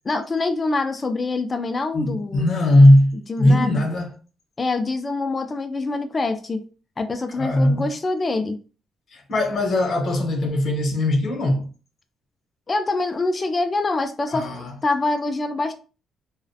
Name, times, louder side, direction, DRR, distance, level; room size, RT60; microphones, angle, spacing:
voice 1, 0.1-2.5 3.3-3.8 4.6-6.6 7.0-8.6 12.7-15.7, left 3 dB, 30° left, 0.3 m, -25 dB
voice 2, 1.9-4.1 7.4-7.9 9.1-11.7 14.3-14.7, left 1 dB, 55° left, 0.8 m, -19 dB
2.4 x 2.0 x 2.6 m
cardioid pair, 90°, 0 cm